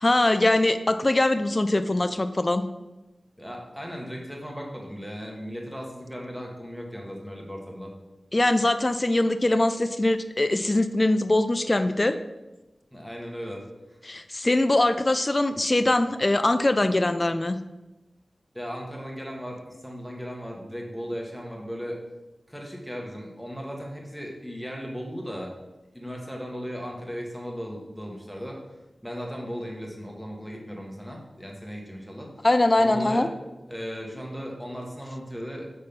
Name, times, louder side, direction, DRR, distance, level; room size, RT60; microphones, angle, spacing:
voice 1, 0.0-2.7 8.3-12.2 14.1-17.6 32.4-33.3, left 2 dB, 35° left, 10 dB, 0.4 m, -22 dB
voice 2, 3.4-7.9 12.9-13.6 18.5-22.0 22.5-25.6 25.9-28.6 29.0-32.3 32.8-33.3 33.7-35.7, equal, ahead, 0 dB, 1.6 m, -36 dB
5.5 x 4.0 x 5.2 m, 1.0 s
cardioid pair, 50°, 0 cm